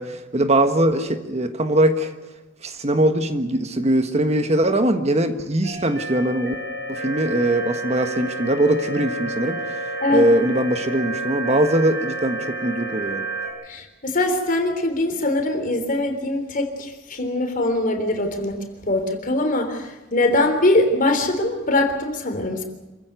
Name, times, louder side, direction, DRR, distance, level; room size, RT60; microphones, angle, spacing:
voice 1, 0.0-2.1 2.6-6.5 6.9-9.8 10.1-13.2, right 1 dB, 35° right, 7 dB, 1.4 m, -21 dB
sound 1, 5.6-13.5, right 2 dB, 65° right, 7.8 m, -30 dB
voice 2, 13.7-18.6 18.9-22.6, left 2 dB, 45° left, 6 dB, 3.5 m, -22 dB
27.0 x 15.0 x 8.2 m, 1.2 s
head